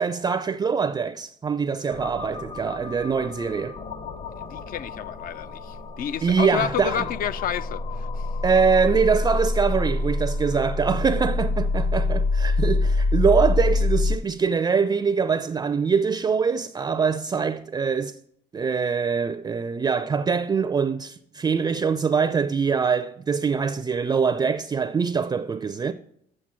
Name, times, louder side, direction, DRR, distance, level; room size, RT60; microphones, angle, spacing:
voice 1, 0.0-3.8 6.2-7.1 8.4-18.2 18.5-25.9, right 5 dB, 25° right, 0.4 m, -23 dB
sound 1, 1.9-14.2, left 3 dB, 40° left, 0.9 m, -26 dB
voice 2, 4.4-8.2, left 9 dB, 55° left, 0.5 m, -30 dB
7.5 x 6.9 x 5.8 m
cardioid pair, 110°, 17 cm